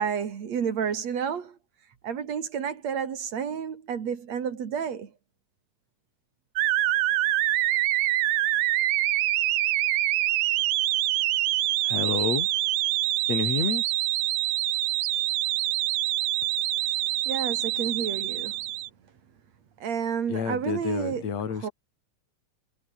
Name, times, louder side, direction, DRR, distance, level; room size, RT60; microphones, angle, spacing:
voice 1, 0.0-1.6 2.0-5.1 17.3-18.7 19.8-21.3 21.5-21.7, right 7 dB, 60° right, 3.3 m, -30 dB
sound 1, 6.6-18.9, right 15 dB, 75° right, 2.3 m, -25 dB
voice 2, 11.8-12.5 13.3-13.8 20.3-21.7, left 6 dB, 60° left, 4.3 m, -29 dB
omnidirectional pair, 3.5 m